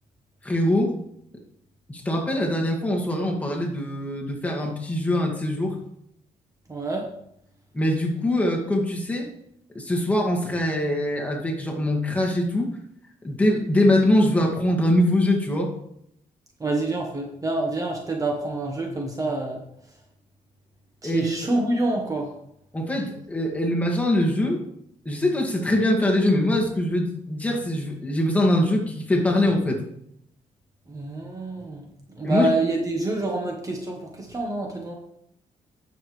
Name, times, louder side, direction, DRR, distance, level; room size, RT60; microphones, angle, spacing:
voice 1, 0.4-0.9 1.9-5.8 7.7-9.3 9.7-12.7 13.2-15.7 21.0-21.5 22.7-24.6 25.1-29.8 32.2-32.5, left 1 dB, 10° left, -1 dB, 2.0 m, -23 dB
voice 2, 6.7-7.1 16.6-19.6 21.0-22.3 30.9-31.8 32.1-35.0, right 2 dB, 25° right, 1 dB, 1.3 m, -27 dB
10.0 x 7.1 x 3.3 m, 0.73 s
cardioid pair, 120°, 14 cm